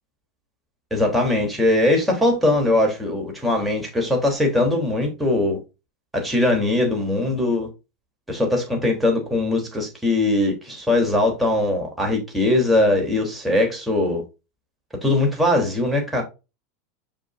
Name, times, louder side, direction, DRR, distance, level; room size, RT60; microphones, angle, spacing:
voice 1, 0.9-5.6 6.1-7.7 8.3-14.2 15.0-16.2, left 2 dB, 5° right, 3.5 m, -21 dB
7.0 x 5.6 x 2.6 m
hypercardioid pair, 90°, 0 cm